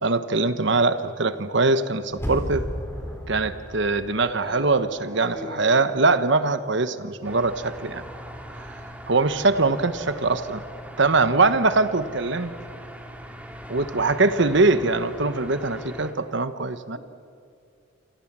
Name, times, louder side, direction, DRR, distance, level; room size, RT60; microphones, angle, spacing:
voice 1, 0.0-2.6 3.3-8.0 8.6-8.7 9.1-10.6 11.0-12.5 13.7-17.0, right 3 dB, 60° right, 12 dB, 1.2 m, -22 dB
sound 1, 2.1-5.1 5.4-5.5, equal, 10° left, 4.1 m, -34 dB
voice 2, 5.0-5.6 16.9-17.0, left 1 dB, 25° right, -7 dB, 6.9 m, -39 dB
sound 2, 7.2-16.1, equal, 5° right, 2.3 m, -40 dB
28.5 x 27.0 x 7.5 m, 2.4 s
head